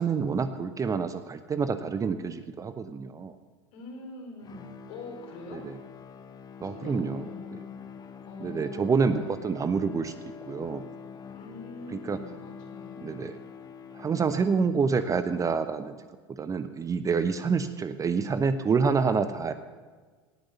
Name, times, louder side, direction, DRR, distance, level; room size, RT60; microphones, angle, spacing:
voice 1, 0.0-3.3 5.5-5.8 6.6-7.3 8.4-10.1 10.5-10.8 11.9-12.2 13.0-13.4 14.0-16.0 16.3-19.5, right 5 dB, 25° right, 11 dB, 0.8 m, -27 dB
voice 2, 3.7-5.6 6.7-7.6 8.3-9.4 11.3-13.1, left 2 dB, 60° left, 1 dB, 4.2 m, -44 dB
sound 1, 4.4-15.2, left 7 dB, 30° left, 1.1 m, -45 dB
18.5 x 6.4 x 7.2 m, 1.4 s
hypercardioid pair, 85°, 14 cm